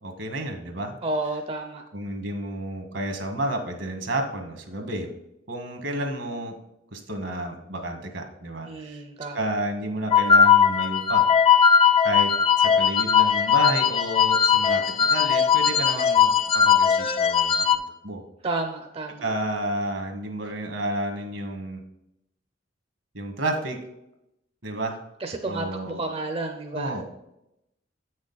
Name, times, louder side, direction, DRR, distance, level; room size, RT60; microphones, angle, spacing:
voice 1, 0.0-0.9 1.9-5.1 5.5-6.5 6.9-9.0 9.3-11.3 11.6-11.7 12.0-12.3 12.6-18.2 19.2-21.8 23.1-23.8 24.6-25.0 25.5-26.0 26.7-27.0, right 1 dB, 70° right, 4 dB, 1.5 m, -31 dB
voice 2, 1.0-1.8 8.7-9.4 18.4-19.2 25.2-26.9, right 2 dB, 30° right, 4 dB, 0.6 m, -31 dB
sound 1, 10.1-17.8, left 7 dB, 30° left, 0.4 m, -19 dB
8.1 x 6.4 x 4.0 m, 0.85 s
head